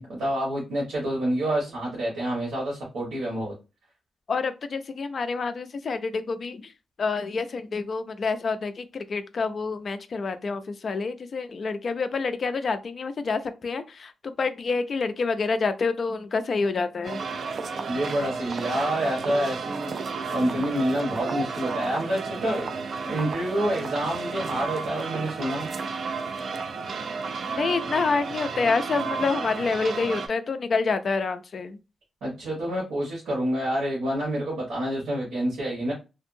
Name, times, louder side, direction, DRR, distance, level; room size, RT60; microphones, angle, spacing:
voice 1, 0.0-3.5 17.9-20.0 20.3-22.7 23.0-25.7 32.2-35.9, right 1 dB, 85° right, 1.2 m, -28 dB
voice 2, 4.3-6.7 7.0-17.2 27.6-31.8, left 4 dB, 40° left, 0.3 m, -27 dB
sound 1, 17.0-30.3, right 5 dB, 45° right, 0.3 m, -32 dB
2.7 x 2.6 x 2.6 m
wide cardioid pair, 160°, 0 cm